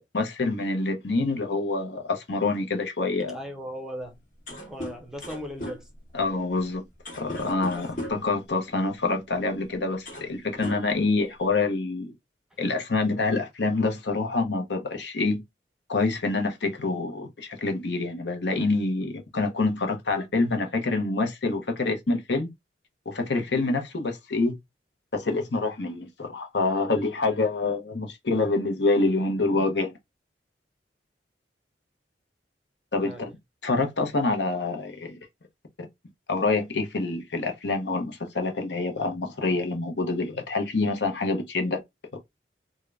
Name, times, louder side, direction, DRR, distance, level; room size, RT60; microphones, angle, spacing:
voice 1, 0.1-3.4 6.1-6.8 7.1-12.1 12.6-15.4 15.9-22.5 23.1-24.6 25.1-29.9 32.9-33.3 33.6-35.2 36.3-41.8 42.1-42.2, left 3 dB, 70° left, 0.8 m, -26 dB
voice 2, 3.3-4.2 4.5-5.9 7.7-7.8 33.0-33.4, equal, 5° right, 0.6 m, -38 dB
sound 1, 4.1-4.2 4.3-8.4 9.4-9.5 9.9-10.3 10.6-11.5, left 1 dB, 45° left, 1.2 m, -38 dB
3.6 x 2.2 x 3.3 m
head